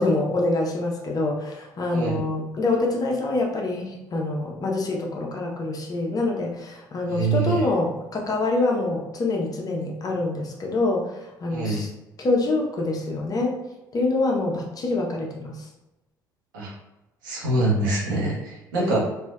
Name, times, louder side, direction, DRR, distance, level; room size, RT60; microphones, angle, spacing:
voice 1, 0.0-11.9 12.2-13.5 13.9-15.7 18.8-19.0, left 2 dB, 35° left, 0 dB, 0.8 m, -25 dB
voice 2, 1.9-2.2 7.1-7.6 11.5-11.8 16.5-16.7 17.2-19.0, right 3 dB, 80° right, -5 dB, 1.0 m, -25 dB
3.2 x 2.7 x 2.3 m, 0.99 s
hypercardioid pair, 55°, 10 cm